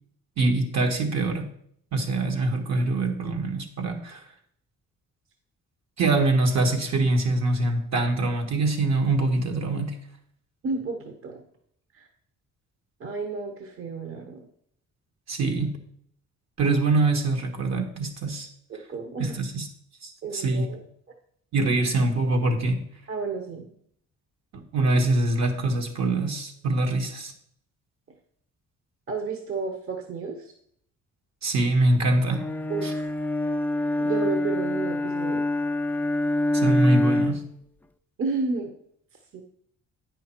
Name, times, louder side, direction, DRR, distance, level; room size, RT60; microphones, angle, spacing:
voice 1, 0.4-1.5 1.9-4.2 6.0-10.0 15.3-15.8 16.6-18.5 19.2-19.7 20.3-20.7 21.5-22.8 24.5-27.3 31.4-32.5 32.8-32.9 36.5-37.4, right 2 dB, 65° right, 3 dB, 1.5 m, -24 dB
voice 2, 10.6-11.4 11.9-12.1 13.0-14.5 18.7-19.4 20.2-20.8 23.1-23.7 29.1-30.5 32.7-33.0 34.0-35.4 38.2-38.7 39.3-39.4, right 4 dB, 45° right, 4 dB, 1.0 m, -31 dB
Bowed string instrument, 32.3-37.6, left 1 dB, 5° left, 0.3 m, -26 dB
8.8 x 5.6 x 4.4 m, 0.68 s
cardioid pair, 90°, 30 cm